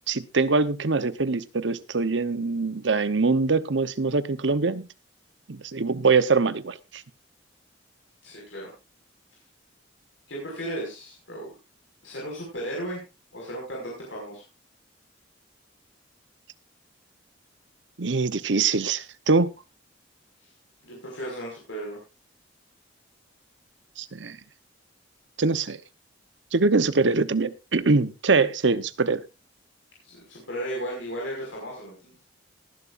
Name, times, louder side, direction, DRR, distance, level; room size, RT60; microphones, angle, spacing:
voice 1, 0.1-4.9 5.5-7.0 18.0-19.5 24.0-24.4 25.4-25.8 26.5-29.2, right 4 dB, 70° right, 13 dB, 0.9 m, -23 dB
voice 2, 8.2-8.7 10.3-11.5 12.0-13.0 13.3-14.4 20.8-22.0 30.0-32.2, right 1 dB, 85° left, -2 dB, 5.5 m, -35 dB
19.0 x 11.0 x 2.5 m, 0.28 s
head